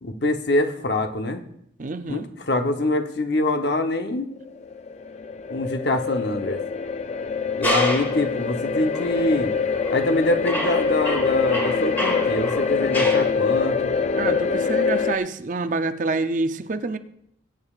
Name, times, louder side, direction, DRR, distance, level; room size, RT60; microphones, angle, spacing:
voice 1, 0.0-1.4 2.1-4.3 5.5-6.6 7.6-9.5 9.9-13.9, left 1 dB, 60° left, 0.9 m, -25 dB
voice 2, 1.8-2.3 14.2-17.0, right 3 dB, 45° right, 0.5 m, -27 dB
sound 1, 4.4-15.2, left 5 dB, 35° left, 0.4 m, -24 dB
sound 2, 7.6-8.2 8.9-9.1 9.7-10.1 10.4-13.3, equal, 10° left, 1.5 m, -28 dB
21.5 x 8.8 x 2.4 m
head